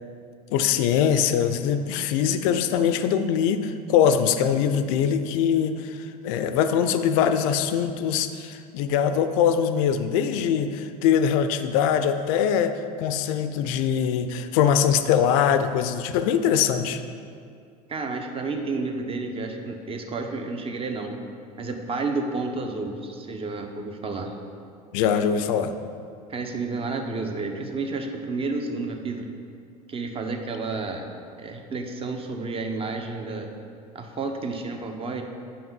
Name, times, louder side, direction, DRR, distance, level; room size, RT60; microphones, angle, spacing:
voice 1, 0.5-17.0 24.9-25.7, left 8 dB, 60° left, 9 dB, 0.5 m, -22 dB
voice 2, 17.9-21.1 21.6-24.3 26.3-29.3 29.9-31.1 31.4-33.5 33.9-35.2, right 3 dB, 30° right, 4 dB, 0.8 m, -31 dB
5.7 x 5.1 x 5.4 m, 2.3 s
hypercardioid pair, 70°, 20 cm